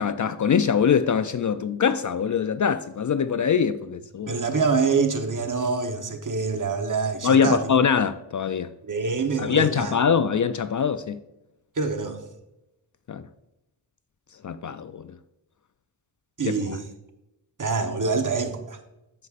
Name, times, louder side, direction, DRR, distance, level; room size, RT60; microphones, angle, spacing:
voice 1, 0.0-4.3 7.2-8.7 9.4-11.2 13.1-13.2 14.4-15.1 16.5-16.8, left 7 dB, 45° left, 0.4 m, -23 dB
voice 2, 4.3-7.7 8.8-10.0 11.8-12.2 16.4-16.9 17.6-18.8, right 4 dB, 45° right, 1.1 m, -25 dB
14.5 x 5.3 x 2.5 m
cardioid pair, 60°, 45 cm